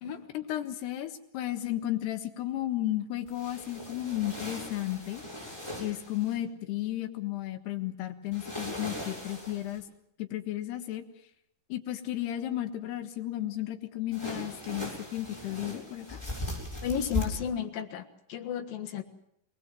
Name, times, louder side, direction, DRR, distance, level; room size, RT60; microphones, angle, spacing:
voice 1, 0.3-5.2 5.8-9.9 10.2-11.1 11.7-16.2, left 14 dB, 90° left, 7 dB, 3.6 m, -34 dB
sound 1, 3.3-6.4 8.3-9.8 14.1-17.2, left 1 dB, 5° left, 7.3 m, -39 dB
voice 2, 16.8-19.0, left 8 dB, 65° left, 5 dB, 3.2 m, -33 dB
25.5 x 19.5 x 7.7 m, 0.76 s
omnidirectional pair, 4.6 m